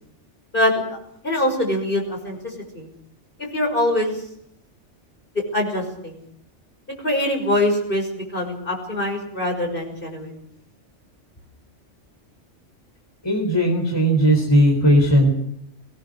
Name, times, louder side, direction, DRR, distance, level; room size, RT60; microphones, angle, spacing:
voice 1, 0.5-1.0 1.2-2.9 3.5-4.2 5.5-6.2 7.0-10.4, left 1 dB, 45° left, 2 dB, 6.1 m, -23 dB
voice 2, 13.2-15.3, equal, 20° left, 1 dB, 4.0 m, -17 dB
22.5 x 19.5 x 6.5 m, 0.73 s
omnidirectional pair, 1.2 m